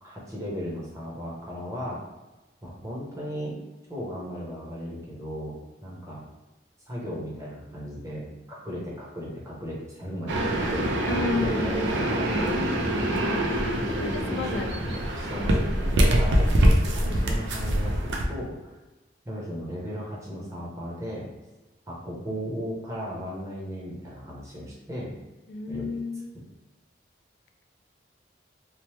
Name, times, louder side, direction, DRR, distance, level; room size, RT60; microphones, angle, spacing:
voice 1, 0.0-2.0 2.6-3.6 3.9-6.2 6.9-12.9 13.7-14.6 15.2-18.7 19.2-21.3 21.9-25.1 25.7-25.9, equal, 15° right, -5 dB, 0.7 m, -36 dB
sound 1, 10.3-18.2, right 1 dB, 85° right, 0.4 m, -24 dB
voice 2, 11.1-11.7 14.0-15.0 15.3-15.4 25.5-26.3, left 3 dB, 80° left, 5 dB, 0.3 m, -32 dB
3.0 x 2.1 x 3.0 m, 1.1 s
head